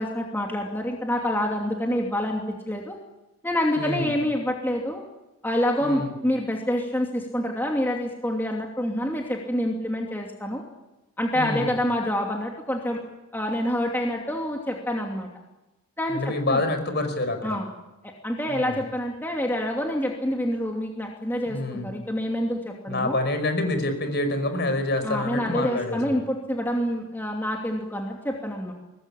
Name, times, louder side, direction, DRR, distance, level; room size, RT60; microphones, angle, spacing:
voice 1, 0.0-3.0 3.4-5.0 5.4-10.6 11.2-13.0 13.3-15.3 16.0-16.6 17.4-17.7 18.0-23.2 25.0-28.7, left 1 dB, 10° left, 0 dB, 2.7 m, -27 dB
voice 2, 3.8-4.1 5.8-6.1 11.3-11.7 16.1-17.6 18.5-18.8 21.5-21.9 22.9-26.2, left 2 dB, 50° left, 8 dB, 5.2 m, -27 dB
23.5 x 20.0 x 10.0 m, 1.0 s
head